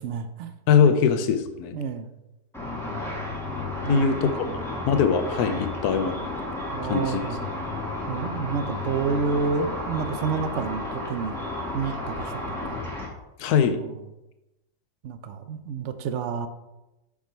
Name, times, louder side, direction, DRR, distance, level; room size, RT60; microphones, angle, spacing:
voice 1, 0.0-0.5 1.7-2.1 3.8-4.6 6.7-7.4 8.1-11.4 11.7-12.8 13.5-14.0 15.0-16.5, right 5 dB, 75° right, 9 dB, 0.6 m, -30 dB
voice 2, 0.7-1.8 3.9-4.3 4.9-6.3 6.8-7.2 13.4-13.8, left 7 dB, 65° left, 9 dB, 1.1 m, -22 dB
Car / Traffic noise roadway noise / Engine, 2.5-13.1, left 2 dB, ahead, 1.5 m, -32 dB
7.2 x 4.8 x 4.5 m, 0.97 s
omnidirectional pair, 1.9 m